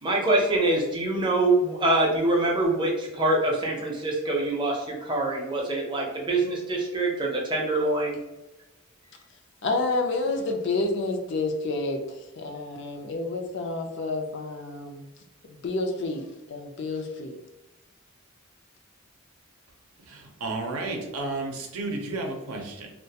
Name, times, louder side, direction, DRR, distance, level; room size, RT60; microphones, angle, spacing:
voice 1, 0.0-8.2, right 2 dB, 20° right, -2 dB, 0.5 m, -24 dB
voice 2, 9.6-15.0 15.5-17.3, left 2 dB, 55° left, 4 dB, 0.4 m, -29 dB
voice 3, 20.1-22.9, right 2 dB, 90° right, 2 dB, 0.6 m, -32 dB
2.3 x 2.1 x 2.7 m, 1.0 s
head